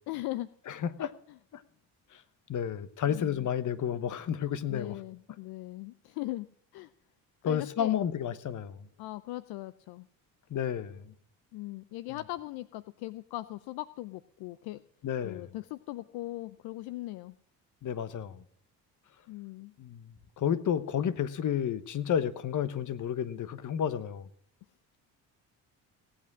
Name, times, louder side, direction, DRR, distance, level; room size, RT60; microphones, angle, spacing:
voice 1, 0.1-0.5 1.0-1.4 4.7-6.5 6.7-6.9 7.4-8.0 9.0-10.1 11.5-14.8 15.2-17.3 19.3-19.7, left 17 dB, 70° left, 0.6 m, -39 dB
voice 2, 0.7-1.1 1.5-1.6 2.1-2.2 2.5-5.0 7.4-8.8 10.5-11.1 15.0-15.5 17.8-18.4 19.8-24.3, left 9 dB, 50° left, 1.1 m, -31 dB
17.5 x 8.7 x 6.1 m
supercardioid pair, 70°, 40 cm